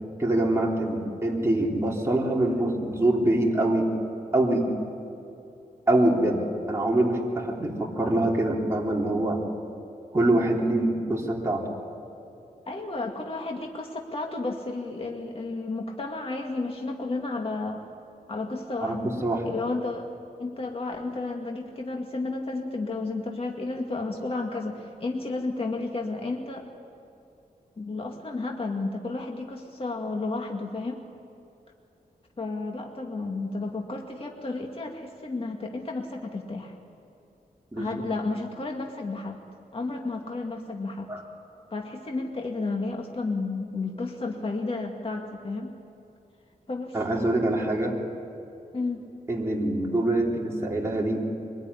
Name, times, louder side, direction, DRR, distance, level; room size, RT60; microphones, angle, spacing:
voice 1, 0.2-3.9 4.3-4.6 5.9-6.4 6.7-9.4 10.1-11.6 18.8-19.5 37.7-37.9 41.1-41.2 46.9-47.9 49.3-51.2, right 1 dB, 15° right, -2 dB, 3.6 m, -24 dB
voice 2, 12.7-17.8 18.3-19.1 19.4-20.1 20.4-26.7 27.8-31.0 32.4-36.7 37.8-39.4 39.7-41.1 41.7-45.7 46.7-47.0 48.7-49.1, left 3 dB, 35° left, 1 dB, 2.1 m, -32 dB
25.0 x 21.0 x 9.8 m, 2.8 s
wide cardioid pair, 105°, 16 cm